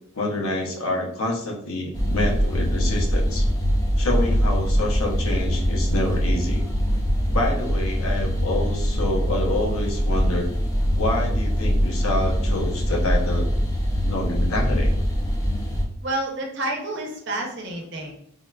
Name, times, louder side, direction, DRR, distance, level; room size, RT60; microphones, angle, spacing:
voice 1, 0.2-3.5 4.0-6.6 7.3-10.5 11.0-13.5 14.0-14.9, left 1 dB, 70° left, 0 dB, 0.7 m, -27 dB
sound 1, 1.9-15.8, equal, 15° left, 0.4 m, -23 dB
voice 2, 16.0-18.1, right 1 dB, 55° right, 1 dB, 0.7 m, -29 dB
3.5 x 2.4 x 2.2 m, 0.69 s
head